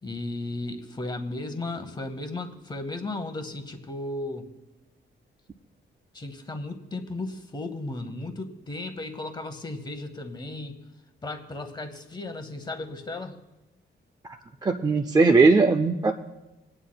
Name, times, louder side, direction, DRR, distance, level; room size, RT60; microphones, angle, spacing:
voice 1, 0.0-4.5 6.1-10.8 11.2-13.4, left 2 dB, 20° left, 7 dB, 0.9 m, -35 dB
voice 2, 14.6-16.1, right 3 dB, 20° right, 5 dB, 0.3 m, -19 dB
26.5 x 9.5 x 2.2 m, 1.0 s
wide cardioid pair, 165°, 21 cm